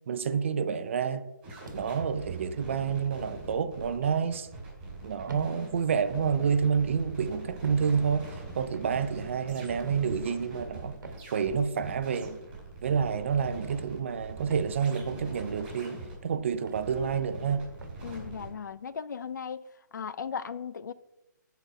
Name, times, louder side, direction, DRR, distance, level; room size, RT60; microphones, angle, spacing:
voice 1, 0.1-1.2 1.7-4.5 5.0-11.0 11.3-12.4 12.8-17.7, right 6 dB, 40° right, 0.4 m, -29 dB
sound 1, 1.4-18.5, right 2 dB, 15° right, 2.2 m, -43 dB
sound 2, 1.7-2.1 2.8-3.0 4.0-4.2 5.2-5.5 6.4-6.7 7.6-7.9 8.7-9.0 9.8-10.1 11.0-11.3 12.2-12.4 13.3-13.5 14.5-14.7 15.5-15.8 16.7-16.9 17.8-18.0, right 2 dB, 75° right, 1.1 m, -46 dB
sound 3, 4.4-10.6, left 1 dB, 5° left, 0.8 m, -54 dB
voice 2, 18.0-19.6 19.9-20.9, left 6 dB, 65° left, 0.4 m, -37 dB
6.1 x 4.1 x 5.1 m
hypercardioid pair, 165°, 10 cm